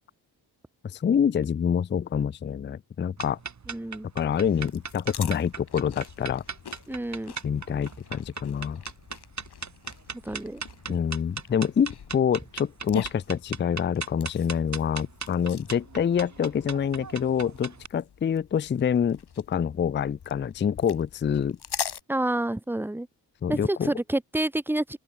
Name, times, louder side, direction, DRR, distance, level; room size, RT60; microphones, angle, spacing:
voice 1, 0.8-3.4 4.2-6.4 7.4-8.8 10.9-21.6 23.4-23.9, left 8 dB, 30° left, 0.4 m, -26 dB
sound 1, 3.2-17.9, right 5 dB, 40° right, 3.9 m, -39 dB
voice 2, 3.7-4.1 6.9-7.4 10.2-10.6 22.1-23.1 23.5-25.0, right 1 dB, 5° right, 0.9 m, -28 dB
sound 2, 4.2-22.0, left 8 dB, 65° left, 6.3 m, -42 dB
open air
wide cardioid pair, 135°, 43 cm